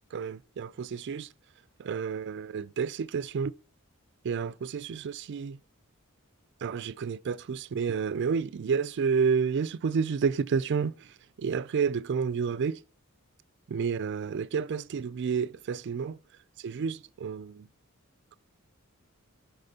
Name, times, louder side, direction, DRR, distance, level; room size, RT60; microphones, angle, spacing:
voice 1, 0.1-1.3 1.8-3.5 4.2-5.6 6.6-12.8 13.7-16.2 16.6-17.7, right 6 dB, 55° right, 0.4 m, -30 dB
12.0 x 4.2 x 2.8 m
head